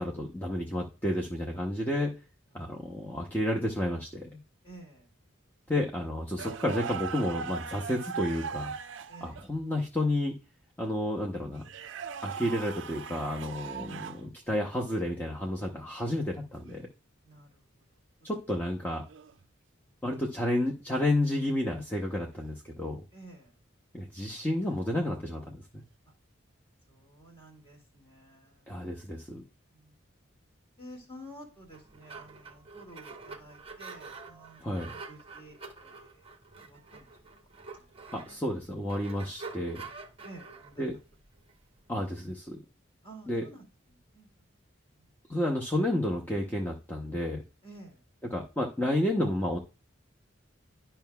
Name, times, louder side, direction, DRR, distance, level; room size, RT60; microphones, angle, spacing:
voice 1, 0.0-2.1 2.5-4.3 5.7-8.7 9.2-10.3 10.8-11.7 12.2-13.9 14.5-16.9 18.2-19.0 20.0-23.0 23.9-25.8 28.7-29.4 34.6-35.0 38.1-39.8 40.8-40.9 41.9-42.6 43.3-43.4 45.3-47.4 48.3-49.6, left 1 dB, 10° left, -1 dB, 0.8 m, -31 dB
voice 2, 4.6-5.1 9.1-9.5 13.7-14.3 17.2-17.8 18.2-18.3 23.1-23.5 26.1-26.2 26.9-28.9 29.7-30.0 30.8-36.3 36.6-37.1 37.7-38.5 40.2-41.0 43.0-44.3 44.9-45.1 47.6-48.0, right 1 dB, 30° left, 0 dB, 2.2 m, -51 dB
sound 1, 6.4-9.5 11.6-14.3 16.6-16.8 19.1-19.4 22.3-22.5 24.6-24.9, right 6 dB, 65° right, 0.4 m, -39 dB
sound 2, 31.5-42.2, right 4 dB, 30° right, 0.8 m, -47 dB
11.0 x 5.6 x 2.3 m, 0.32 s
head